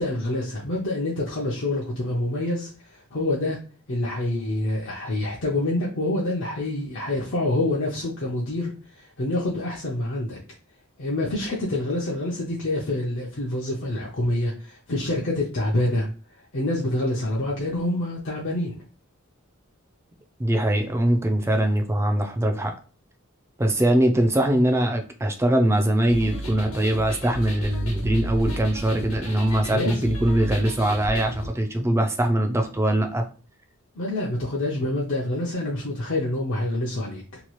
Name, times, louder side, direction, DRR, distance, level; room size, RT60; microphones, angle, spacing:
voice 1, 0.0-3.6 3.9-8.7 9.0-10.4 11.0-16.1 16.5-18.7 29.7-30.1 33.9-37.4, left 1 dB, 60° left, -5 dB, 0.6 m, -26 dB
voice 2, 20.4-22.7 23.6-33.2, right 1 dB, 15° right, 5 dB, 0.4 m, -22 dB
sound 1, 26.1-31.5, right 1 dB, 85° left, 0.9 m, -33 dB
2.9 x 2.3 x 3.0 m, 0.37 s
head